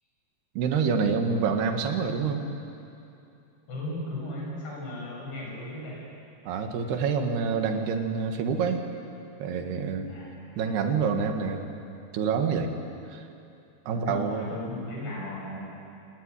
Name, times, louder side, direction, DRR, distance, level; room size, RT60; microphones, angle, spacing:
voice 1, 0.6-2.5 6.5-8.8 9.4-10.1 10.6-11.6 12.1-12.7 13.1-13.3 13.9-14.5, right 5 dB, 70° right, 5 dB, 3.6 m, -27 dB
voice 2, 3.7-6.0 10.1-10.9 13.9-15.7, left 1 dB, 80° left, -3 dB, 9.5 m, -36 dB
27.0 x 19.0 x 9.8 m, 2.7 s
omnidirectional pair, 4.9 m